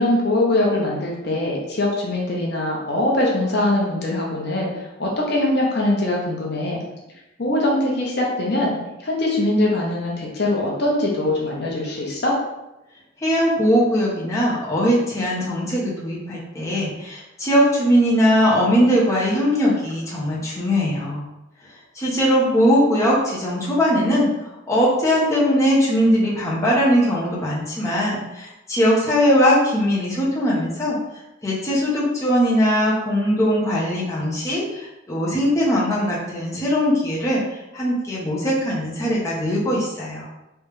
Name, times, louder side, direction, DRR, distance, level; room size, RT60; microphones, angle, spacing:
voice 1, 0.0-6.8 7.4-8.7 9.0-12.4, left 1 dB, 55° left, -3 dB, 0.8 m, -22 dB
voice 2, 13.2-21.2 21.9-31.0 31.4-40.3, equal, 15° left, -6 dB, 0.8 m, -20 dB
3.4 x 3.1 x 3.1 m, 0.94 s
head